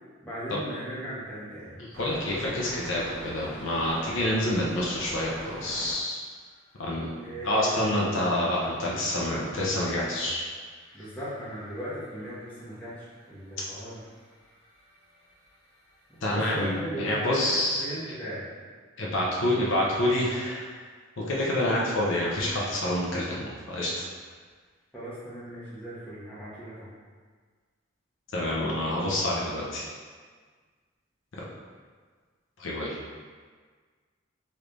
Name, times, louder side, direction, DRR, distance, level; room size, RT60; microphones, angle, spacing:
voice 1, 0.2-1.8 7.2-8.2 10.9-14.0 16.2-18.4 24.9-26.9, right 1 dB, 5° left, -11 dB, 0.9 m, -37 dB
voice 2, 1.8-6.3 6.8-7.1 7.4-10.5 16.2-16.7 17.0-17.8 19.0-20.8 21.2-24.0 28.3-29.9 31.4-31.5 32.6-33.0, left 1 dB, 65° left, -5 dB, 0.6 m, -27 dB
sound 1, 1.9-5.9 6.3-7.2 7.5-7.6 7.8-9.7 10.1-16.7, equal, 80° right, 0.9 m, -45 dB
3.3 x 3.2 x 2.5 m, 1.6 s
head